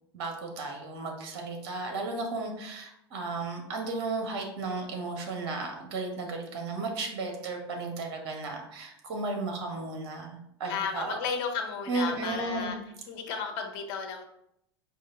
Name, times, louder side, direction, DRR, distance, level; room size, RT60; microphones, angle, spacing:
voice 1, 0.1-11.2 11.9-12.7, right 3 dB, 55° right, 3 dB, 1.3 m, -34 dB
voice 2, 10.7-12.7 13.1-14.2, left 5 dB, 55° left, 3 dB, 1.0 m, -33 dB
4.8 x 2.5 x 3.9 m, 0.77 s
figure-of-eight pair, 90°, 14 cm